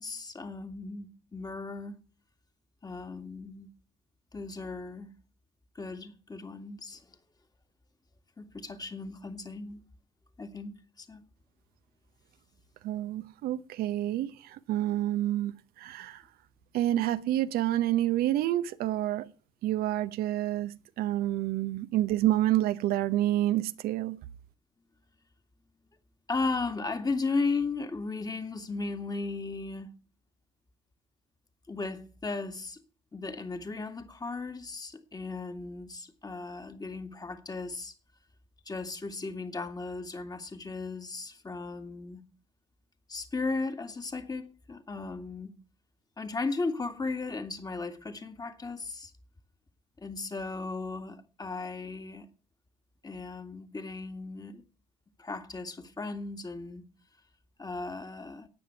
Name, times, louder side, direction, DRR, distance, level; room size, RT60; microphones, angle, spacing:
voice 1, 0.0-2.0 2.8-3.7 4.3-5.1 5.8-7.1 8.4-9.8 10.4-11.2 26.3-29.9 31.7-32.8 33.1-37.9 38.7-42.2 43.1-45.5 46.2-49.1 50.0-52.3 53.0-54.6 55.2-56.8 57.6-58.5, left 3 dB, 20° left, 2.2 m, -36 dB
voice 2, 12.8-16.2 16.7-19.3 19.6-24.2, right 14 dB, 60° right, 0.9 m, -28 dB
13.5 x 9.4 x 6.0 m
hypercardioid pair, 55°, 18 cm